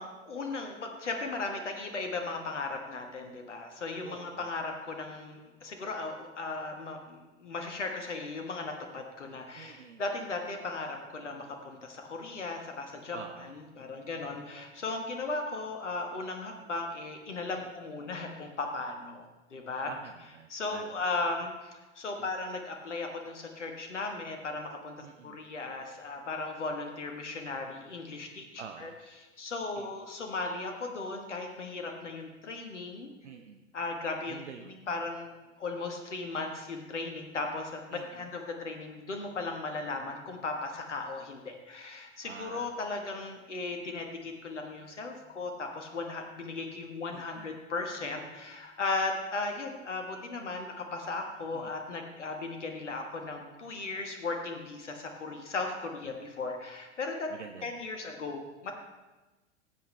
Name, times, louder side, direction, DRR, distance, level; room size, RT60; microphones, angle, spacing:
voice 1, 0.0-19.9 20.5-28.9 29.4-33.1 33.7-34.4 34.6-57.3 57.6-58.7, left 3 dB, 75° left, 3 dB, 1.4 m, -37 dB
voice 2, 4.0-4.5 9.6-10.0 13.1-13.5 19.9-20.9 22.2-22.3 25.0-25.4 28.6-29.0 29.8-30.0 33.2-33.6 34.3-34.8 37.9-38.3 42.2-42.7 47.1-47.6 51.5-51.7 57.3-57.7, right 7 dB, 75° right, 7 dB, 0.7 m, -47 dB
18.5 x 8.0 x 3.3 m, 1.2 s
figure-of-eight pair, 90°, 36 cm